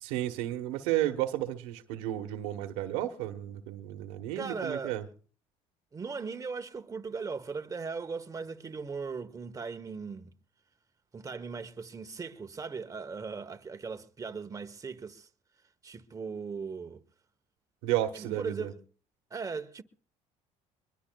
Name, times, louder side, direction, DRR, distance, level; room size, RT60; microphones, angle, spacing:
voice 1, 0.0-5.1 17.8-18.7, right 13 dB, 90° right, 1.2 m, -32 dB
voice 2, 4.3-5.0 5.9-10.3 11.1-15.3 15.8-17.0 18.1-18.8 19.3-19.8, right 5 dB, 25° right, 1.1 m, -38 dB
23.0 x 22.5 x 2.3 m
supercardioid pair, 90°, 14 cm